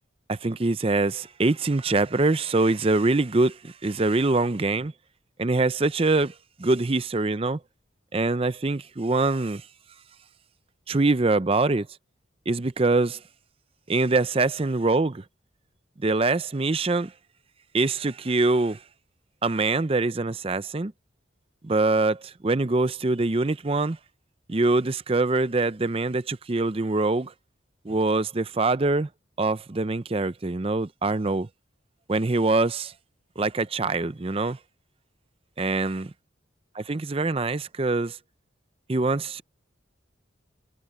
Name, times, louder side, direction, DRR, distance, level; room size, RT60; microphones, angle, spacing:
voice 1, 0.3-4.9 5.4-7.6 8.1-9.6 10.9-11.9 12.5-13.2 13.9-15.2 16.0-17.1 17.7-18.8 19.4-20.9 21.6-24.0 24.5-27.3 27.8-29.1 29.4-31.5 32.1-32.9 33.4-34.6 35.6-36.1 36.7-38.2 38.9-39.4, right 3 dB, 30° right, 0.5 m, -24 dB
head